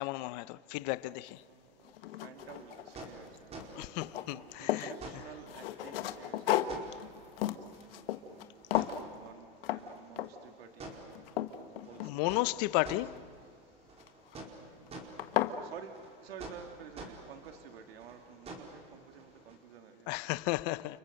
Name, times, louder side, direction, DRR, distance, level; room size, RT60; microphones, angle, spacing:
voice 1, 0.0-1.4 3.7-4.9 12.0-13.2 20.1-21.0, left 20 dB, 45° left, 0.7 m, -34 dB
sound 1, 1.3-1.4 1.8-3.3 3.6-4.9 5.5-8.5 8.7-9.1 9.6-9.8 10.2-10.5 10.9-12.5 14.0-14.4 14.9-15.0 15.2-15.6, left 12 dB, 70° left, 1.6 m, -34 dB
voice 2, 1.4-3.9 4.3-7.6 7.9-11.2 11.4-12.4 12.8-13.0 13.5-13.9 15.6-20.4, right 7 dB, 80° right, 2.1 m, -52 dB
sound 2, 2.4-19.6, right 2 dB, 20° right, 4.9 m, -50 dB
30.0 x 29.5 x 6.6 m
supercardioid pair, 135°, 29 cm